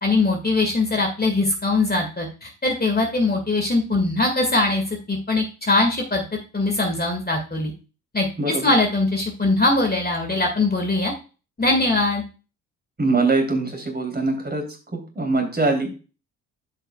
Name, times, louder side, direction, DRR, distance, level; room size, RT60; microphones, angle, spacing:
voice 1, 0.0-6.2 6.5-7.7 8.1-11.1 11.6-12.2, left 2 dB, 20° left, 2 dB, 2.0 m, -21 dB
voice 2, 8.4-8.7 13.0-14.6 14.9-15.9, right 3 dB, 20° right, 2 dB, 3.2 m, -22 dB
12.5 x 5.5 x 2.3 m, 0.33 s
figure-of-eight pair, 45°, 44 cm